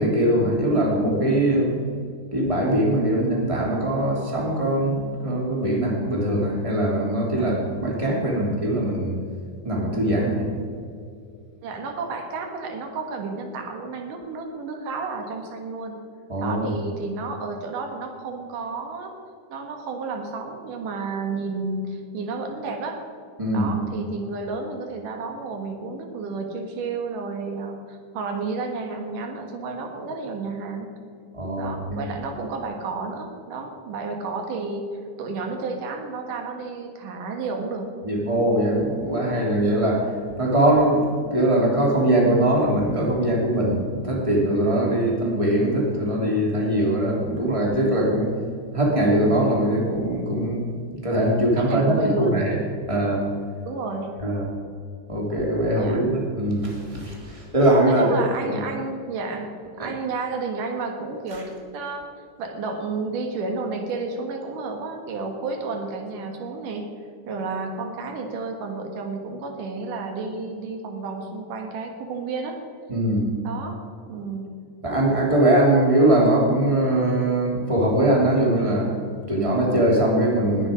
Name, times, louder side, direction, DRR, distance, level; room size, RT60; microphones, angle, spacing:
voice 1, 0.0-1.8 2.3-9.2 9.6-10.5 16.3-16.8 23.4-23.7 31.3-32.0 38.0-40.1 40.4-48.3 48.7-50.6 50.9-52.6 52.9-53.2 54.2-54.5 55.1-58.1 58.4-58.6 59.8-59.9 61.3-61.4 72.9-73.3 74.8-78.9 79.3-80.7, right 1 dB, 10° right, -2 dB, 2.6 m, -21 dB
voice 2, 11.6-16.0 16.4-19.1 19.5-23.0 23.5-30.9 31.6-37.9 51.6-52.4 53.6-54.1 55.7-56.0 57.9-62.1 62.4-66.9 67.3-72.6 73.4-73.8 74.1-74.5, right 4 dB, 90° right, 4 dB, 3.2 m, -31 dB
19.5 x 9.3 x 5.1 m, 2.3 s
omnidirectional pair, 3.6 m